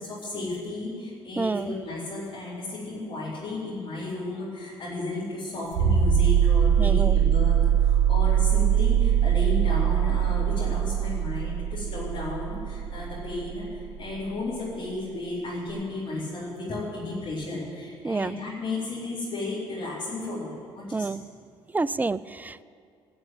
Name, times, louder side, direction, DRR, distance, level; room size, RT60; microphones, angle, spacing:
voice 1, 0.0-21.1, left 2 dB, 45° left, -9 dB, 4.0 m, -34 dB
voice 2, 1.4-1.8 6.8-7.2 18.0-18.4 20.9-21.2 21.7-22.6, right 3 dB, 15° right, 18 dB, 0.4 m, -28 dB
sound 1, 5.7-14.2 15.7-15.8, right 9 dB, 65° right, 1.5 m, -22 dB
16.0 x 6.2 x 9.0 m, 2.2 s
hypercardioid pair, 55°, 12 cm